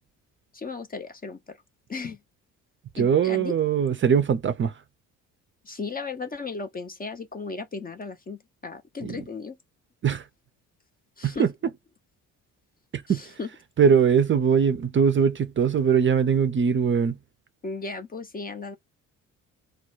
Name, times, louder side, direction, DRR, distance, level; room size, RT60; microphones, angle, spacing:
voice 1, 0.5-1.4 1.9-2.2 3.0-3.5 5.7-9.5 11.2-11.5 13.4-13.5 17.6-18.8, left 4 dB, 20° left, 0.5 m, -35 dB
voice 2, 2.9-4.7 9.0-9.2 10.0-10.2 11.2-11.5 12.9-13.3 13.8-17.2, right 7 dB, 30° right, 0.5 m, -21 dB
2.2 x 2.0 x 3.0 m
hypercardioid pair, 50°, 41 cm